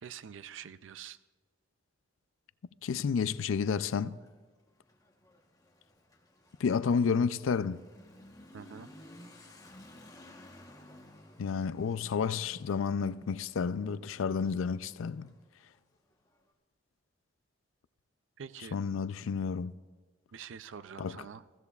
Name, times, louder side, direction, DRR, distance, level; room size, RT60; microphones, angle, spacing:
voice 1, 0.0-1.2 8.5-8.9 18.4-18.8 20.3-21.4, right 7 dB, 70° right, 0.4 m, -46 dB
voice 2, 2.8-4.1 6.6-7.8 11.4-15.3 18.7-19.7 21.0-21.3, left 6 dB, 90° left, 0.4 m, -31 dB
Motorcycle / Accelerating revving vroom, 4.1-16.4, left 1 dB, 20° left, 1.1 m, -56 dB
22.0 x 15.5 x 2.4 m
head